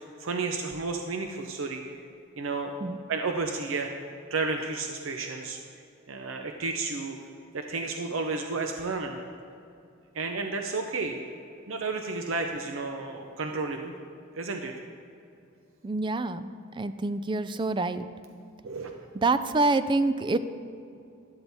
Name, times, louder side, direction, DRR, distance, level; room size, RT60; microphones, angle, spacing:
voice 1, 0.0-1.8 2.4-2.7 3.1-5.6 6.1-7.2 7.5-9.2 10.1-11.2 11.7-13.9 14.3-14.7 18.6-19.1, right 3 dB, 70° right, 4 dB, 0.7 m, -32 dB
voice 2, 15.8-18.1 19.1-20.4, right 3 dB, 25° right, 12 dB, 0.3 m, -27 dB
12.0 x 12.0 x 3.5 m, 2.5 s
head